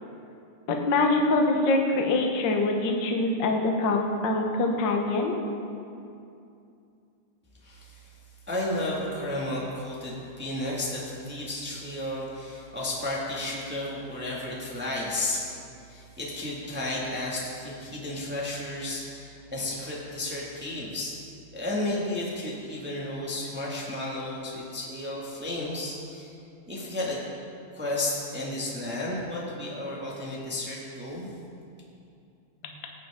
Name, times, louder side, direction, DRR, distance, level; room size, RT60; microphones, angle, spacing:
voice 1, 0.7-5.3, left 2 dB, 70° left, 2 dB, 1.1 m, -24 dB
voice 2, 7.6-8.1 8.5-15.5 15.8-21.1 21.5-26.3 26.6-27.2 27.7-31.3, left 1 dB, 5° right, -5 dB, 0.9 m, -33 dB
17.5 x 9.0 x 3.7 m, 2.6 s
omnidirectional pair, 3.8 m